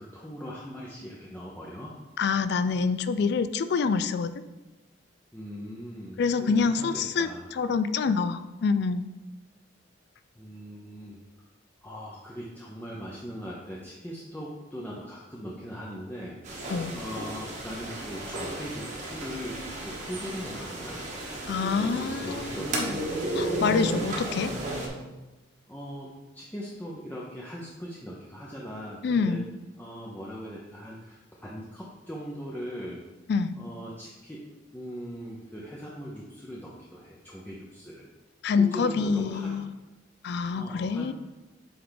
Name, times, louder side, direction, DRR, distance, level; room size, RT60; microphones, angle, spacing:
voice 1, 0.0-1.9 5.3-7.5 10.4-11.2 11.8-16.4 16.9-21.0 21.5-23.0 23.8-24.3 25.7-29.4 29.8-33.0 33.6-34.4 34.7-38.1 38.6-39.6 40.5-41.1, equal, 10° left, -4 dB, 0.6 m, -40 dB
voice 2, 2.2-4.3 6.2-9.1 16.7-17.0 21.5-24.5 29.0-29.5 33.3-33.6 38.4-39.6 40.2-41.1, left 5 dB, 60° left, 12 dB, 0.3 m, -26 dB
sound 1, 16.4-24.9, right 1 dB, 40° right, 1.1 m, -34 dB
7.8 x 3.4 x 3.9 m, 1.1 s
head